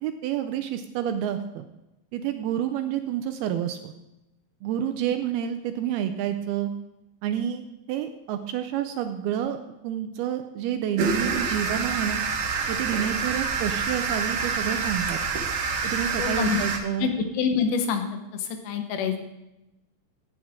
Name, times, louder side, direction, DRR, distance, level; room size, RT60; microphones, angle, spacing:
voice 1, 0.0-1.7 2.1-3.9 4.6-6.7 7.2-12.2 12.7-15.2 15.8-17.1, right 10 dB, 80° right, 8 dB, 2.3 m, -29 dB
sound 1, 11.0-16.8, right 5 dB, 65° right, 2.4 m, -27 dB
voice 2, 16.2-16.6 17.0-18.0 18.3-19.2, left 6 dB, 85° left, 6 dB, 3.3 m, -26 dB
16.0 x 8.8 x 3.6 m, 0.93 s
omnidirectional pair, 4.9 m